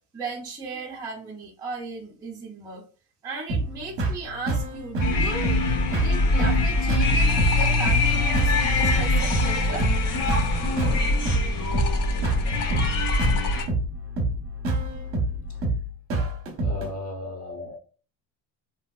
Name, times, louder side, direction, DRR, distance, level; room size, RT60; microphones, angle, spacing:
voice 1, 0.1-2.8 3.2-9.9, right 4 dB, 10° right, 0.4 m, -36 dB
sound 1, 3.5-16.9, right 2 dB, 35° right, 0.7 m, -27 dB
sound 2, 5.0-13.6, left 2 dB, 65° left, 0.9 m, -23 dB
sound 3, 6.7-11.3 11.6-13.7, left 5 dB, 90° left, 0.6 m, -39 dB
voice 2, 16.6-17.8, left 1 dB, 40° left, 0.9 m, -35 dB
3.2 x 2.7 x 2.2 m
cardioid pair, 165°, 38 cm